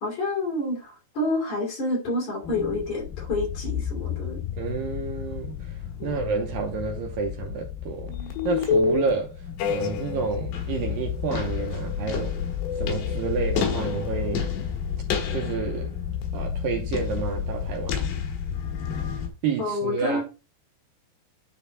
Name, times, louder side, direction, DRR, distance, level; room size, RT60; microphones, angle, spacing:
voice 1, 0.0-4.4 6.0-6.2 19.6-20.2, left 2 dB, 45° left, 4.1 m, -28 dB
sound 1, 2.4-19.3, left 7 dB, 85° left, 3.8 m, -29 dB
voice 2, 4.6-8.2 8.4-12.4 12.7-14.5 15.3-15.9 16.3-18.1 19.4-20.2, right 5 dB, 75° right, 2.3 m, -30 dB
10.0 x 4.0 x 4.1 m
omnidirectional pair, 4.8 m